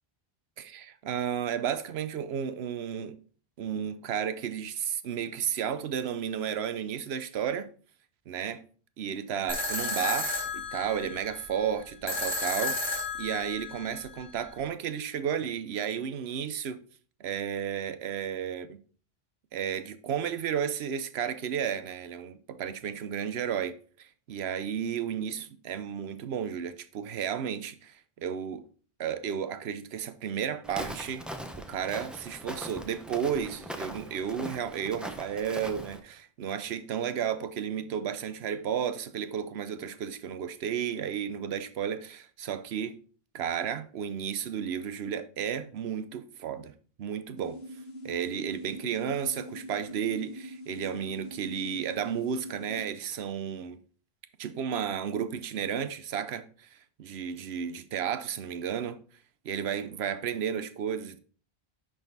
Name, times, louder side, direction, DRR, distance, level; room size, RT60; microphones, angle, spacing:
voice 1, 0.6-3.2 3.6-7.7 8.3-8.6 9.0-12.8 13.1-16.8 17.2-18.8 19.5-28.6 29.0-31.3 31.6-43.0 43.3-46.7 47.0-47.6 48.0-53.8 54.4-59.0 59.4-61.2, right 8 dB, 80° right, 0.9 m, -33 dB
sound 1, 9.5-14.5, left 3 dB, 25° left, 2.0 m, -33 dB
Walk footsteps, 30.6-36.0, equal, ahead, 0.6 m, -41 dB
sound 2, 47.4-52.9, equal, 75° left, 1.5 m, -44 dB
10.5 x 4.0 x 3.9 m
omnidirectional pair, 1.1 m